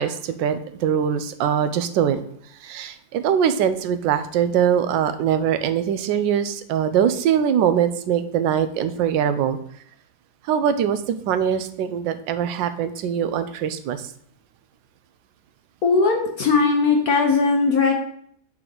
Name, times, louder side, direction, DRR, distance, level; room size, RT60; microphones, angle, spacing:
voice 1, 0.0-2.2 2.6-9.6 10.5-14.0, right 8 dB, 75° right, 10 dB, 1.2 m, -22 dB
voice 2, 15.8-17.9, left 4 dB, 60° left, 2 dB, 1.1 m, -19 dB
7.5 x 4.6 x 3.9 m, 0.66 s
omnidirectional pair, 2.0 m